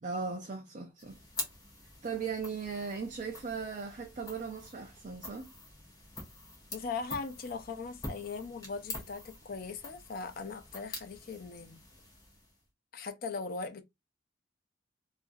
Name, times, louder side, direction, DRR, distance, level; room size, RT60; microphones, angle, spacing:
voice 1, 0.0-1.2 2.0-5.5, right 5 dB, 40° right, 0.4 m, -38 dB
sound 1, 1.0-12.7, left 2 dB, 20° left, 0.8 m, -46 dB
voice 2, 6.7-11.8 12.9-13.8, left 4 dB, 50° left, 0.5 m, -39 dB
2.9 x 2.5 x 2.5 m
head